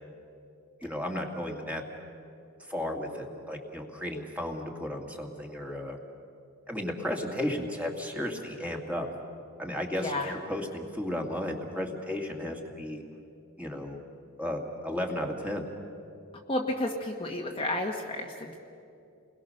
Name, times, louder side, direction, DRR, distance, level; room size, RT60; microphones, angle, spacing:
voice 1, 0.8-1.8 2.7-6.0 6.7-9.1 9.6-10.2 10.5-13.0 13.6-14.0 14.4-15.7, left 1 dB, 5° right, 1 dB, 2.3 m, -34 dB
voice 2, 9.9-10.3 16.5-18.6, left 1 dB, 25° left, 0 dB, 1.4 m, -31 dB
29.5 x 21.5 x 6.6 m, 2.6 s
head